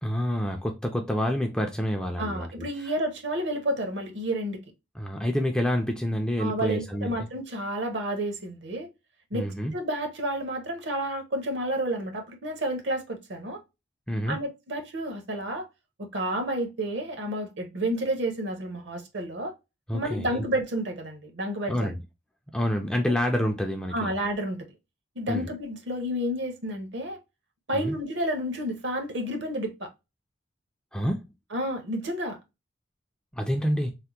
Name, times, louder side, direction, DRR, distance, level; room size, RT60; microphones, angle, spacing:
voice 1, 0.0-2.9 5.0-7.1 9.3-9.7 14.1-14.4 19.9-20.4 21.7-22.0 22.5-24.1 25.3-25.5 27.7-27.9 30.9-31.2 33.3-33.9, equal, 5° left, 0.4 m, -28 dB
voice 2, 2.2-4.6 6.4-8.9 9.3-13.6 14.3-15.7 16.0-19.5 19.9-21.9 23.9-24.7 25.2-27.2 27.7-29.9 31.5-32.4, right 1 dB, 60° right, 0.8 m, -30 dB
3.3 x 2.1 x 2.8 m
head